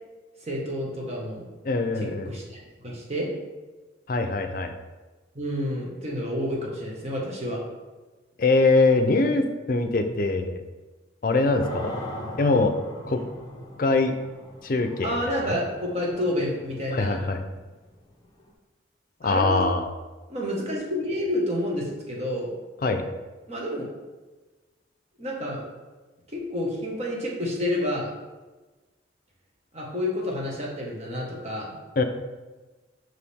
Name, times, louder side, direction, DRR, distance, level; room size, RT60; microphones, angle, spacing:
voice 1, 0.4-1.5 1.9-3.3 5.3-7.6 13.1-13.2 15.0-17.2 19.2-19.7 20.3-22.6 23.5-23.9 25.2-25.6 26.3-28.1 29.7-31.8, left 1 dB, 35° right, -3 dB, 1.5 m, -29 dB
voice 2, 1.6-2.3 4.1-4.7 8.4-10.6 11.2-11.9 12.4-12.7 13.1-13.2 13.8-14.1 14.6-15.6 16.9-17.4 19.2-19.9 22.8-23.0 32.0-32.1, left 3 dB, 45° left, 7 dB, 0.5 m, -23 dB
sound 1, 11.6-18.5, left 1 dB, 20° left, 0.9 m, -40 dB
6.0 x 4.8 x 3.5 m, 1.2 s
head